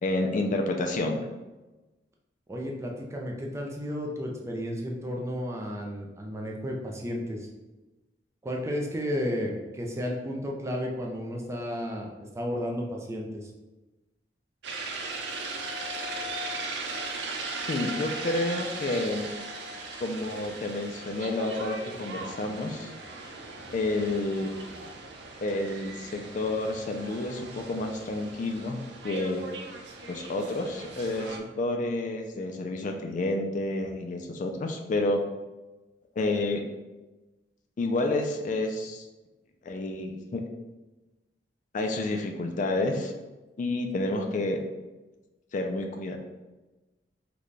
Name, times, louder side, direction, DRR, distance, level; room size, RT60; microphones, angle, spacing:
voice 1, 0.0-1.3 17.7-19.3 20.0-22.9 23.7-24.5 25.4-28.8 29.0-29.5 30.1-35.2 36.2-36.6 37.8-39.0 39.6-40.4 41.7-43.1 43.6-44.6 45.5-46.2, left 2 dB, 45° left, 4 dB, 0.3 m, -29 dB
voice 2, 2.5-7.5 8.4-13.5, equal, 15° right, -1 dB, 0.4 m, -33 dB
sound 1, 14.6-31.4, right 2 dB, 70° right, 0.5 m, -38 dB
3.9 x 2.2 x 3.2 m, 1.1 s
head